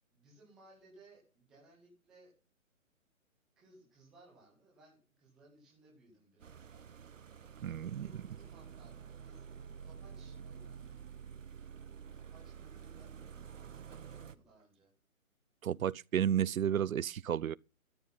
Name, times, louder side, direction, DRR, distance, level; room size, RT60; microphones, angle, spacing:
voice 1, 0.1-2.3 3.6-6.9 7.7-9.5 9.8-11.1 12.1-14.9, right 2 dB, ahead, 0.6 m, -63 dB
sound 1, 6.4-14.4, right 7 dB, 65° right, 1.3 m, -50 dB
voice 2, 7.6-8.1 15.6-17.6, right 9 dB, 85° right, 0.6 m, -32 dB
13.5 x 10.5 x 5.5 m
hypercardioid pair, 160°, 41 cm